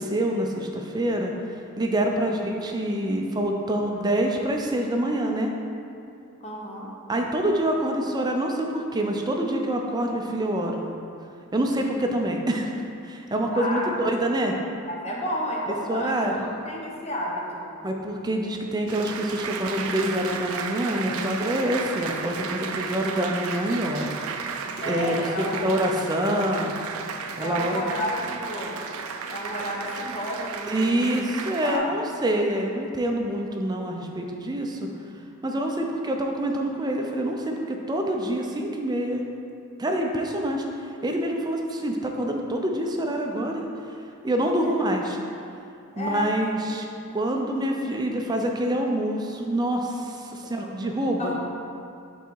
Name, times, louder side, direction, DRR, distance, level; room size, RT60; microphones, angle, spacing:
voice 1, 0.0-1.3 1.8-5.5 7.1-10.9 11.5-12.7 13.0-14.6 15.9-16.4 17.8-24.2 24.9-26.7 27.4-27.8 30.7-34.9 35.4-39.2 39.8-40.6 41.0-43.7 44.2-45.2 46.0-46.9 47.1-51.3, right 1 dB, 20° right, 2 dB, 0.5 m, -26 dB
voice 2, 6.4-6.9 13.5-13.9 14.9-17.7 24.8-25.9 27.4-28.8 29.3-31.1 31.6-32.0 44.6-44.8 45.9-46.3 51.2-51.4, equal, 30° left, -3 dB, 0.9 m, -31 dB
Applause, 18.9-31.8, right 5 dB, 85° right, 0.4 m, -34 dB
5.8 x 4.0 x 4.6 m, 2.6 s
head